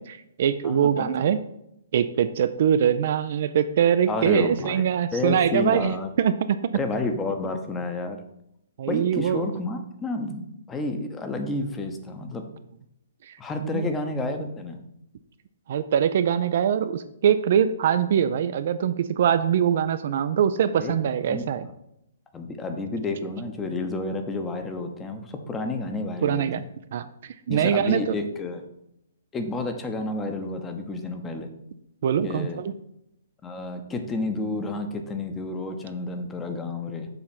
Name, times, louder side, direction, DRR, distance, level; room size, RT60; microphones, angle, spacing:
voice 1, 0.0-1.4 1.9-6.6 8.8-9.4 13.3-13.9 15.7-21.7 26.2-26.6 26.9-28.1 32.0-32.7, right 8 dB, 50° right, 11 dB, 0.4 m, -23 dB
voice 2, 0.6-1.1 4.1-6.1 6.7-8.2 8.9-12.5 13.4-14.8 20.8-21.0 21.3-21.4 22.3-26.4 27.5-28.6 29.3-31.5 32.2-32.6 33.4-37.1, left 2 dB, 15° left, 5 dB, 0.9 m, -30 dB
7.0 x 4.2 x 5.9 m, 0.79 s
figure-of-eight pair, 120°, 0 cm